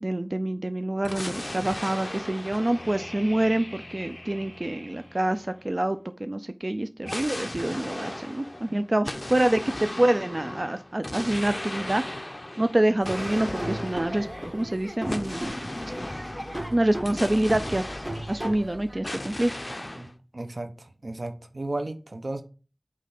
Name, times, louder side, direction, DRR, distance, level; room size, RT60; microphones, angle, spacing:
voice 1, 0.0-12.3 12.6-14.3 14.5-15.5 16.7-19.5, right 1 dB, 50° right, 10 dB, 0.4 m, -26 dB
sound 1, 1.0-5.8 7.0-18.7 19.0-20.1, left 1 dB, 35° left, 0.7 m, -37 dB
Laughter / Drum, 13.0-19.0, right 1 dB, 25° right, 2.4 m, -37 dB
voice 2, 20.3-20.7 21.0-22.4, right 2 dB, 85° right, 7 dB, 0.9 m, -33 dB
8.3 x 3.2 x 5.8 m, 0.36 s
wide cardioid pair, 40°, 0 cm